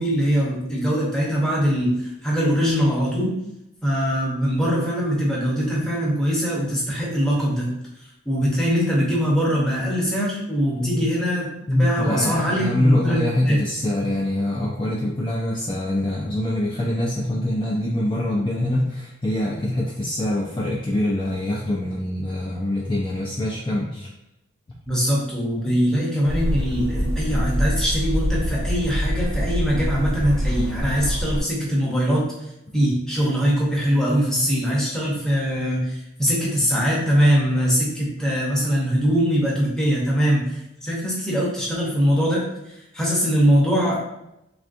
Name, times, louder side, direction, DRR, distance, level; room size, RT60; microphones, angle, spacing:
voice 1, 0.0-3.4 3.8-7.7 8.3-11.4 11.7-13.6 24.8-44.0, equal, 5° left, -5 dB, 0.7 m, -22 dB
voice 2, 10.8-11.1 11.7-24.1, left 1 dB, 25° left, -5 dB, 0.3 m, -24 dB
sound 1, 26.3-31.4, equal, 80° right, 0.9 m, -25 dB
3.4 x 2.4 x 2.5 m, 0.86 s
head